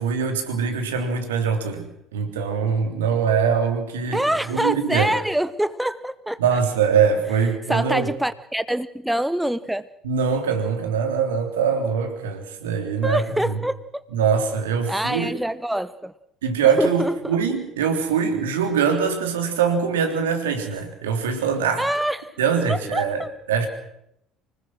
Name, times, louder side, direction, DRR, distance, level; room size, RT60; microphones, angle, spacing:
voice 1, 0.0-5.1 6.4-8.1 10.0-13.5 14.1-15.3 16.4-21.9 22.4-23.2 23.5-23.7, right 6 dB, 75° right, 5 dB, 3.3 m, -23 dB
voice 2, 4.1-6.6 7.7-9.9 13.0-13.8 14.9-16.1 16.8-17.4 21.8-22.4 22.7-23.3, right 1 dB, 5° right, 15 dB, 0.9 m, -25 dB
25.5 x 19.5 x 6.3 m, 0.77 s
figure-of-eight pair, 60°, 0 cm